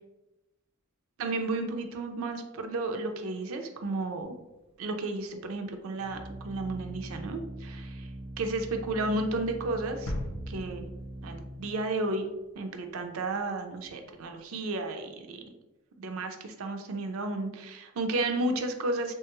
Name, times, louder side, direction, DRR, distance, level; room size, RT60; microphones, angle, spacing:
voice 1, 1.2-4.4 4.8-6.2 6.4-8.1 8.4-10.1 10.5-10.9 11.2-15.4 16.0-19.1, right 2 dB, 85° right, 5 dB, 0.4 m, -32 dB
Organ, 4.2-14.7, right 1 dB, 25° right, 0.4 m, -43 dB
sound 1, 10.1-12.0 12.4-12.5, left 1 dB, 80° left, 0.4 m, -39 dB
2.9 x 2.3 x 2.9 m, 1.0 s
head